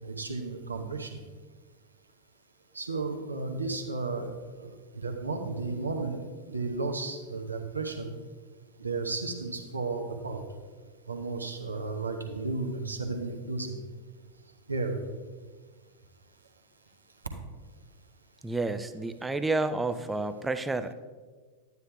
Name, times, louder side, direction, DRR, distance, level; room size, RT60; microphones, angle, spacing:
voice 1, 0.0-1.1 2.7-4.3 4.6-6.2 6.5-8.1 8.8-10.4 11.1-13.8 14.7-14.9, right 3 dB, 80° right, 4 dB, 0.9 m, -33 dB
voice 2, 18.4-20.9, right 2 dB, 10° right, 10 dB, 0.4 m, -30 dB
11.0 x 9.4 x 2.3 m, 1.5 s
figure-of-eight pair, 90°, 0 cm